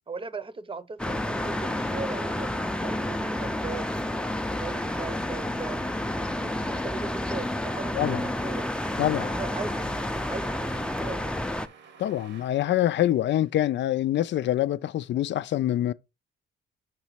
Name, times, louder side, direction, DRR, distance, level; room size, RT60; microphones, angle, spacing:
voice 1, 0.1-4.0 4.4-8.7 9.3-9.9 10.2-11.3, right 4 dB, 25° right, 0.8 m, -39 dB
sound 1, 1.0-11.7, left 1 dB, 5° left, 0.5 m, -30 dB
sound 2, 7.7-13.5, right 5 dB, 70° right, 1.1 m, -51 dB
voice 2, 9.0-9.3 12.0-15.9, left 13 dB, 65° left, 0.5 m, -25 dB
6.0 x 3.1 x 5.6 m
cardioid pair, 80°, 20 cm